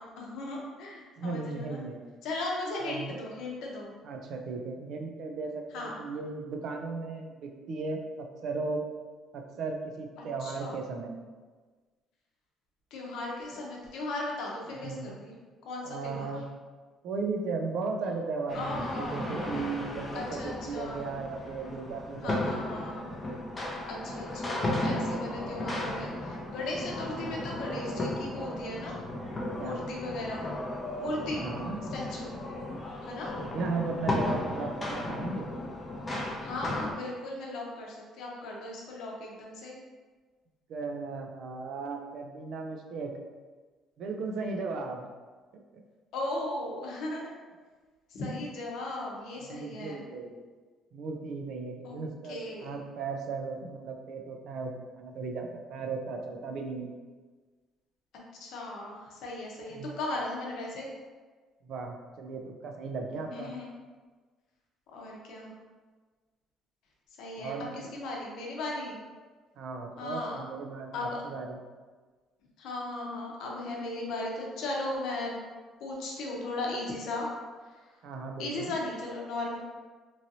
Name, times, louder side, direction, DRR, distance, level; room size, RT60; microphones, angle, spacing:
voice 1, 0.0-1.8 2.2-3.9 5.7-6.0 10.2-10.8 12.9-15.3 15.6-16.3 18.5-19.6 20.1-21.1 22.2-23.0 23.9-29.0 29.6-30.5 31.0-31.4 31.9-32.3 33.0-33.3 36.4-39.8 46.1-47.3 48.1-50.0 51.8-52.0 52.3-52.8 58.4-60.9 63.1-63.7 64.9-65.5 67.2-69.0 70.0-70.4 70.9-71.2 72.6-75.3 75.8-77.3 77.6-78.0 78.4-79.6, left 2 dB, 70° left, -2 dB, 0.7 m, -37 dB
voice 2, 1.2-2.0 2.8-3.1 4.0-8.8 9.3-11.2 14.8-15.2 15.8-16.5 17.0-22.9 27.0-27.5 29.6-29.8 31.3-31.8 33.4-35.5 40.7-43.1 44.0-45.1 49.5-50.4 50.9-56.9 59.7-59.9 61.6-63.5 67.4-67.8 69.6-71.6 78.0-78.7, right 4 dB, 55° right, 3 dB, 0.4 m, -36 dB
sound 1, 18.5-36.9, left 1 dB, 20° left, 0.5 m, -35 dB
3.0 x 2.6 x 2.7 m, 1.4 s
cardioid pair, 160°, 0 cm